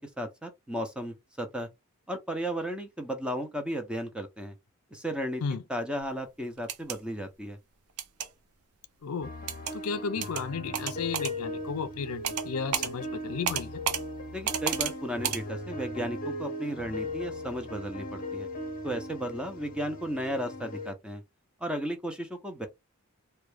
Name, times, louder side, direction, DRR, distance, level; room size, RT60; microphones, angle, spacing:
voice 1, 0.0-1.7 2.1-4.5 4.9-5.4 5.7-7.6 14.3-18.5 18.8-21.2 21.6-22.7, equal, 5° right, 0.6 m, -34 dB
sound 1, 6.6-7.0 8.0-8.3 9.5-9.7 10.2-10.4 10.7-11.3 12.2-12.5 12.7-12.9 13.5-14.0 14.5-14.9 15.2-15.4, right 8 dB, 85° right, 0.6 m, -31 dB
voice 2, 9.0-9.3 9.7-13.8, left 5 dB, 75° left, 0.4 m, -34 dB
sound 2, 9.2-20.9, left 1 dB, 40° left, 0.7 m, -38 dB
3.5 x 2.2 x 3.3 m
head